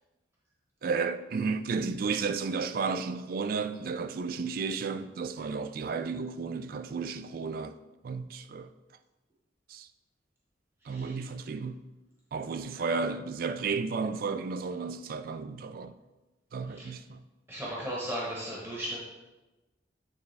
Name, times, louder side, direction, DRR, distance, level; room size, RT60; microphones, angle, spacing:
voice 1, 0.8-7.8 8.0-8.7 9.7-9.9 10.9-11.8 12.3-15.9 16.5-17.2, right 4 dB, 50° right, 0.3 m, -33 dB
voice 2, 10.8-11.2 12.8-12.9 16.7-16.9 17.5-19.0, equal, 15° right, 1.0 m, -36 dB
8.9 x 3.5 x 3.3 m
head